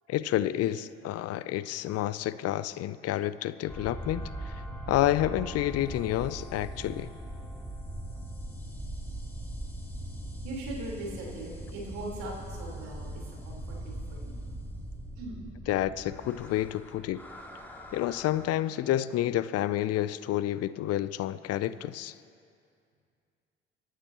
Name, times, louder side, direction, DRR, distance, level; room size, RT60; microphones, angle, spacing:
voice 1, 0.1-4.5 4.9-7.1 15.7-17.2 17.9-22.1, left 13 dB, 55° left, 16 dB, 0.5 m, -29 dB
sound 1, 3.7-18.5, right 1 dB, 5° left, 2.8 m, -40 dB
voice 2, 10.4-14.4 15.1-15.4, right 1 dB, 70° right, -3 dB, 4.2 m, -40 dB
26.0 x 14.0 x 3.0 m, 2.3 s
hypercardioid pair, 50°, 30 cm